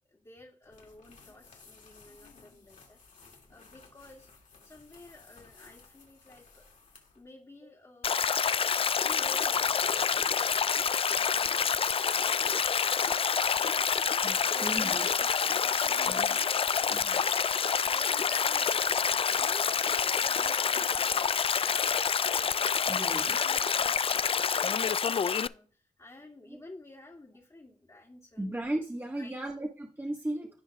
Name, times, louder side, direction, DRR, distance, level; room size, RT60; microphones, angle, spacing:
voice 1, 0.1-3.2 3.5-4.3 4.6-6.6 7.1-13.8 14.5-16.4 17.8-21.8 22.1-28.5 29.2-29.5, left 2 dB, 25° left, -1 dB, 2.3 m, -53 dB
sound 1, 0.6-7.2, left 4 dB, 75° left, 2.4 m, -57 dB
Stream, 8.0-25.5, left 6 dB, 45° left, 0.4 m, -27 dB
voice 2, 14.2-15.0 16.1-16.4 16.9-17.2 22.9-23.4 26.5-26.6 28.4-30.5, right 1 dB, 15° right, -1 dB, 1.5 m, -36 dB
16.0 x 5.4 x 2.4 m, 0.43 s
cardioid pair, 50°, 13 cm